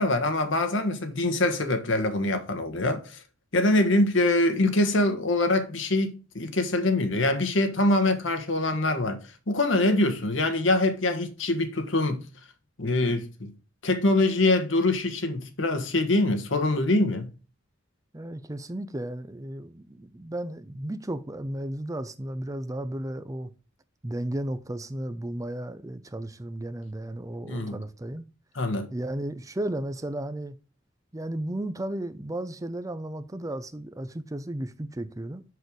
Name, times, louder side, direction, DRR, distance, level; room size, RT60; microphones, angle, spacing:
voice 1, 0.0-3.2 3.5-9.2 9.5-12.2 12.8-13.5 13.8-17.3 27.4-27.8 28.5-28.9, left 2 dB, 70° left, 1.4 m, -24 dB
voice 2, 18.1-23.5 24.0-28.2 28.9-30.6 31.1-35.4, right 1 dB, 15° right, 0.5 m, -34 dB
6.5 x 6.4 x 5.2 m
head